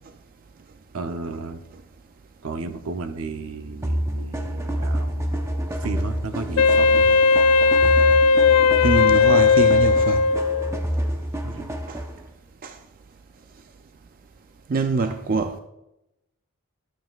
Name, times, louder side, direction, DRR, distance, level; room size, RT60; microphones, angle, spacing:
voice 1, 0.9-1.6 2.4-5.3 5.8-7.2 11.4-11.7, right 3 dB, 70° right, 0.7 m, -33 dB
sound 1, 3.8-12.3, equal, 15° right, 0.7 m, -28 dB
Wind instrument woodwind instrument, 6.6-10.8, left 5 dB, 85° left, 0.4 m, -17 dB
voice 2, 8.8-10.2 11.9-12.0 12.6-12.7 14.7-15.6, right 4 dB, 40° right, 0.4 m, -24 dB
11.5 x 7.6 x 2.4 m
head